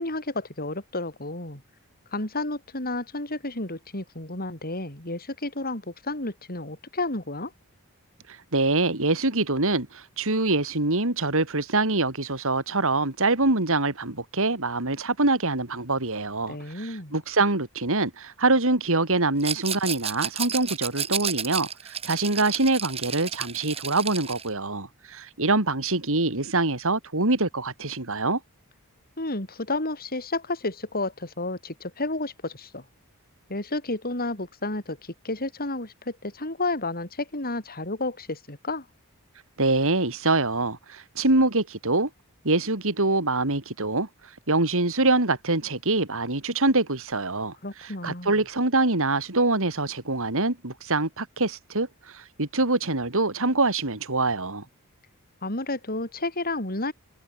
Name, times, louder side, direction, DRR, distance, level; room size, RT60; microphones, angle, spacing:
voice 1, 0.0-1.6 2.1-7.5 16.5-17.2 29.2-32.9 33.5-38.9 47.6-48.3 55.4-56.9, left 2 dB, 40° left, 7.8 m, -31 dB
voice 2, 8.3-28.4 39.6-42.1 42.4-44.1 44.5-54.6, right 2 dB, 65° right, 3.3 m, -25 dB
Rattle, 19.4-24.5, right 7 dB, 25° right, 5.2 m, -32 dB
head